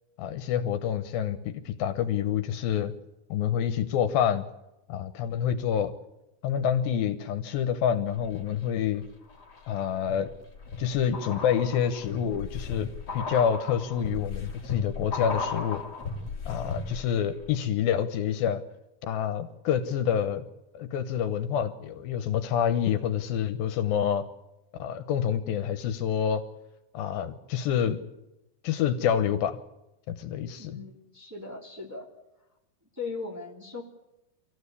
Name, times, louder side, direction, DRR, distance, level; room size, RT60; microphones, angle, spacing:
voice 1, 0.2-2.9 3.3-4.5 4.9-5.9 6.4-9.0 9.7-10.3 10.8-15.8 16.5-18.6 19.0-20.5 20.7-24.3 24.8-26.4 26.9-28.0 28.6-29.6 30.1-30.8, left 9 dB, 80° left, 10 dB, 2.8 m, -27 dB
sound 1, 8.1-8.8 9.3-17.2 17.4-17.5, left 4 dB, 30° left, 2.6 m, -36 dB
voice 2, 30.6-32.1 33.0-33.8, left 4 dB, 5° right, -2 dB, 2.7 m, -38 dB
25.0 x 15.5 x 8.4 m, 0.95 s
omnidirectional pair, 4.3 m